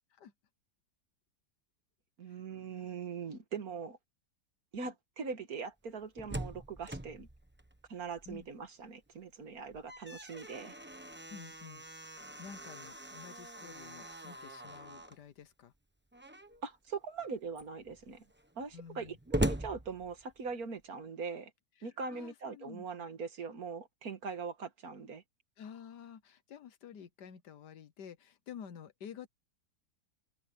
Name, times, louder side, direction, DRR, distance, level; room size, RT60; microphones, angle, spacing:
voice 1, 2.2-4.0 4.7-7.3 7.9-10.7 16.6-18.2 18.6-21.5 21.8-25.2, right 5 dB, 60° right, 2.1 m, -41 dB
Slam, 5.9-8.7 9.0-9.1 9.6-15.2 16.1-16.6 17.2-17.3 17.5-20.6, right 1 dB, 10° right, 0.9 m, -41 dB
voice 2, 11.3-11.8 12.1-15.7 18.7-19.2 21.8-23.1 25.6-29.3, left 7 dB, 80° left, 1.7 m, -50 dB
open air
omnidirectional pair, 1.8 m